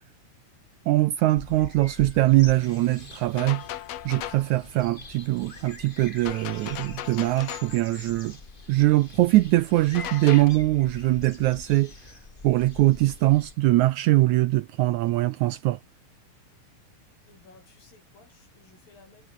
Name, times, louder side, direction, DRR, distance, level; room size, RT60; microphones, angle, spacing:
voice 1, 0.9-3.6 4.1-8.4 8.7-11.9 12.4-15.8, right 17 dB, 80° right, 1.8 m, -22 dB
sound 1, 1.3-13.5, left 3 dB, 25° left, 1.2 m, -44 dB
sound 2, 3.4-4.5 6.3-7.8 9.9-10.5, left 13 dB, 70° left, 1.6 m, -37 dB
voice 2, 17.3-19.3, left 4 dB, 85° left, 9.3 m, -56 dB
omnidirectional pair, 3.9 m